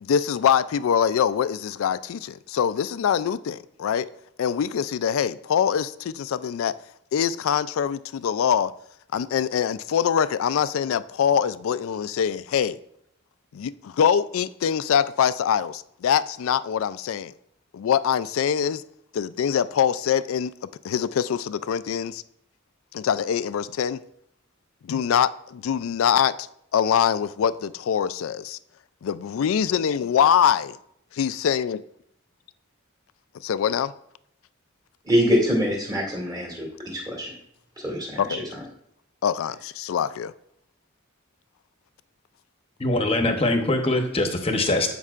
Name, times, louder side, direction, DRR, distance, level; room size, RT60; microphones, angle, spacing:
voice 1, 0.0-4.1 4.4-6.7 7.1-8.7 9.1-12.8 13.5-17.3 17.7-18.8 19.1-20.5 20.8-22.2 22.9-24.0 24.8-26.3 26.7-28.6 29.0-30.8 31.1-31.8 33.4-33.9 38.2-38.4 39.2-40.3, left 8 dB, 80° left, 0.3 m, -24 dB
voice 2, 35.1-37.3 37.8-38.2 38.5-38.6, equal, 20° right, 2.4 m, -24 dB
voice 3, 42.8-44.9, left 2 dB, 30° left, 0.9 m, -23 dB
14.0 x 5.4 x 2.5 m
head